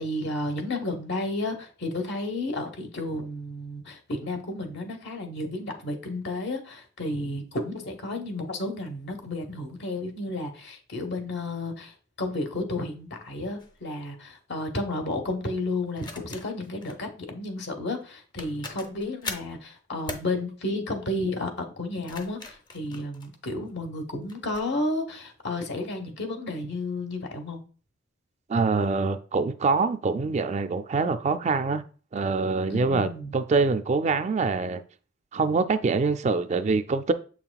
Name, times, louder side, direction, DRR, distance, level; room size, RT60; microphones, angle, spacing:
voice 1, 0.0-27.6 32.7-33.4, left 2 dB, 65° left, 1.1 m, -32 dB
sound 1, 13.6-13.8 16.0-17.0 18.0-18.1 18.4-19.6 20.1-20.3 21.8-23.7 24.3-24.7, left 3 dB, 25° left, 0.7 m, -40 dB
voice 2, 28.5-31.8 32.1-34.8 35.3-37.1, right 4 dB, 35° right, 0.3 m, -25 dB
7.3 x 5.7 x 2.3 m
head